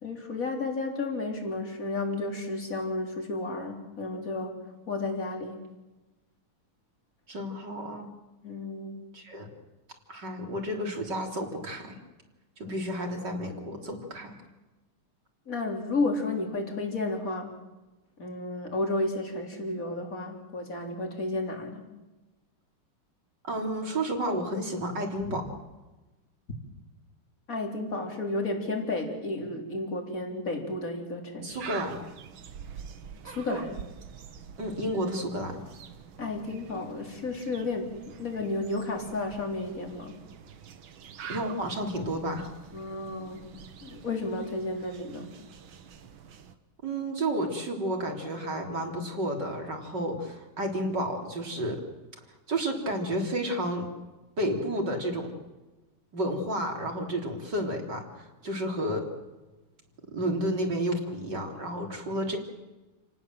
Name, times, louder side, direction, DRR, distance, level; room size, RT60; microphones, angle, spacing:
voice 1, 0.0-4.6 4.9-5.6 8.4-9.1 15.5-17.5 18.2-21.9 27.5-31.6 33.2-33.9 36.2-40.2 42.7-43.5 43.8-45.3, left 2 dB, 40° left, 3 dB, 4.2 m, -32 dB
voice 2, 7.3-8.1 9.1-9.5 10.1-12.0 12.6-14.3 23.4-25.4 31.4-32.0 34.6-35.6 41.3-42.5 46.8-51.8 52.5-53.9 54.4-55.3 56.1-59.1 60.1-62.4, right 1 dB, 50° right, 2 dB, 4.1 m, -31 dB
sound 1, 31.5-46.5, right 7 dB, 70° right, 2.1 m, -45 dB
29.0 x 19.0 x 7.7 m, 1.1 s
omnidirectional pair, 2.4 m